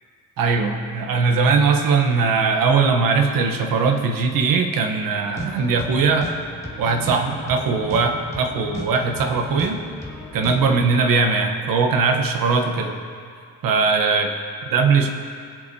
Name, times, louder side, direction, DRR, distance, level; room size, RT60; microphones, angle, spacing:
voice 1, 0.4-6.3 6.8-9.8 10.3-13.0 13.6-14.3 14.7-15.1, right 4 dB, 65° right, 5 dB, 1.1 m, -20 dB
sound 1, 5.2-10.8, left 1 dB, 10° left, 1.4 m, -35 dB
23.0 x 8.2 x 2.8 m, 2.2 s
cardioid pair, 155°, 37 cm